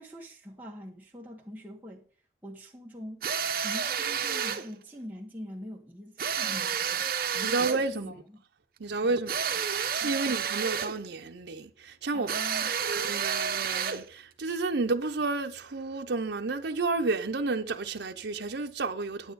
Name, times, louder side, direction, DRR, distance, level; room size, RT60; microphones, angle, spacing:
voice 1, 0.0-2.1 2.4-3.3 3.6-7.1 7.3-7.6 7.8-8.4 9.1-9.2 10.0-10.2 12.1-12.8, equal, 10° right, 1.7 m, -44 dB
sound 1, 3.2-4.7 6.2-7.9 9.3-11.0 12.3-14.1, right 7 dB, 50° right, 1.0 m, -30 dB
voice 2, 7.4-8.2 8.8-12.3 12.6-19.3, right 3 dB, 70° right, 0.7 m, -31 dB
9.3 x 9.1 x 4.1 m
head